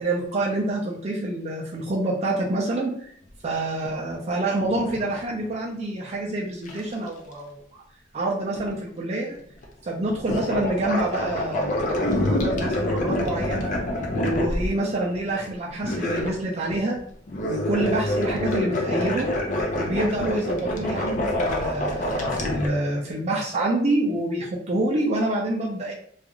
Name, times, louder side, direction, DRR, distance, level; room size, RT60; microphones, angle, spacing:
voice 1, 0.0-3.1 3.4-7.8 8.1-9.3 9.9-13.7 14.1-17.0 17.4-19.3 19.7-25.9, right 2 dB, 35° right, -3 dB, 0.4 m, -27 dB
sound 1, 3.9-4.0 4.4-5.5 6.7-7.1 8.6-8.7 9.3-9.7 10.1-15.2 15.8-17.0 17.3-22.7, left 1 dB, 40° left, 0.5 m, -26 dB
2.4 x 2.3 x 2.9 m, 0.64 s
head